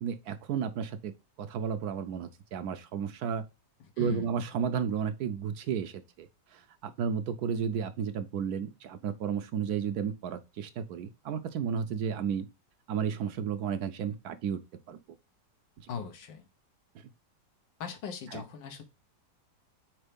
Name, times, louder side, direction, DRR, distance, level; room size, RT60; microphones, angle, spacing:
voice 1, 0.0-1.1 1.4-3.4 4.0-12.5 12.9-14.6 14.9-15.0 15.8-15.9 16.9-17.0 18.3-18.4, right 7 dB, 70° right, 1.0 m, -33 dB
voice 2, 4.0-4.3 15.9-16.5 17.8-18.8, left 6 dB, 90° left, 1.8 m, -39 dB
4.5 x 4.4 x 5.1 m
omnidirectional pair, 1.9 m